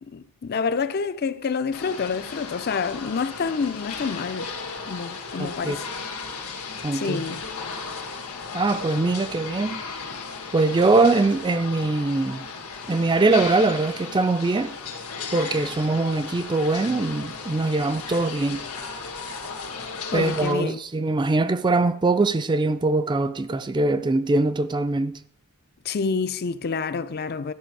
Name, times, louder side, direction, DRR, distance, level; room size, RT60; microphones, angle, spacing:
voice 1, 0.0-4.5 4.9-5.9 6.9-7.4 20.1-20.8 25.8-27.5, left 5 dB, 45° left, 0.4 m, -28 dB
sound 1, 1.7-20.5, left 5 dB, 85° left, 1.5 m, -35 dB
voice 2, 5.4-5.8 6.8-7.2 8.5-9.8 10.5-12.5 12.9-14.7 15.3-18.6 20.1-25.2, right 3 dB, 20° right, 0.4 m, -22 dB
12.5 x 6.9 x 4.6 m
head